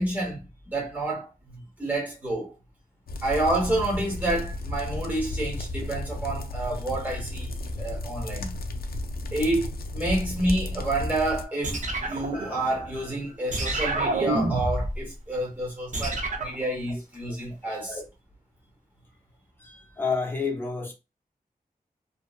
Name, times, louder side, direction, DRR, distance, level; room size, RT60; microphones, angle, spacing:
voice 1, 0.0-2.5 3.2-8.5 9.3-18.0, right 1 dB, 10° right, 1.0 m, -29 dB
sound 1, 3.1-11.4, left 1 dB, 90° left, 0.4 m, -34 dB
sound 2, 11.6-13.0 13.5-15.0 15.9-16.6, right 2 dB, 55° right, 0.6 m, -28 dB
voice 2, 19.6-20.9, left 4 dB, 15° left, 0.7 m, -30 dB
2.7 x 2.2 x 2.3 m
wide cardioid pair, 95°, 15 cm